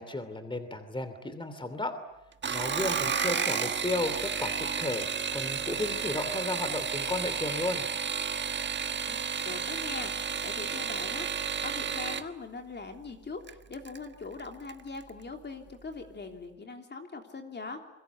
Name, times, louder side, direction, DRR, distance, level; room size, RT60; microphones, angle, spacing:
voice 1, 0.0-1.9 2.5-4.5 4.8-7.9, left 2 dB, 15° left, 10 dB, 2.9 m, -34 dB
sound 1, 2.3-12.3 13.5-14.0 14.4-14.8 15.1-15.2, right 6 dB, 40° right, 1.3 m, -32 dB
voice 2, 2.8-3.7 9.1-9.2 9.4-17.8, left 4 dB, 35° left, 4 dB, 3.2 m, -42 dB
28.0 x 22.5 x 8.2 m, 0.93 s
cardioid pair, 90°, 30 cm